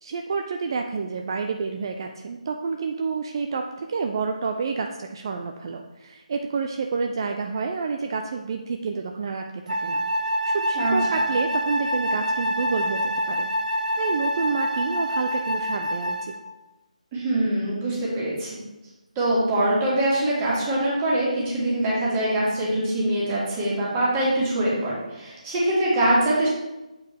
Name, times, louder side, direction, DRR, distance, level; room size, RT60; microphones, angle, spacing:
voice 1, 0.0-10.0 10.4-16.3, right 5 dB, 35° right, 4 dB, 0.4 m, -29 dB
Wind instrument woodwind instrument, 9.7-16.5, equal, 80° right, 0.8 m, -26 dB
voice 2, 10.8-11.2 17.1-18.6 19.2-26.5, right 1 dB, 20° right, -7 dB, 2.1 m, -23 dB
8.0 x 4.4 x 3.4 m, 1.0 s
figure-of-eight pair, 150°, 4 cm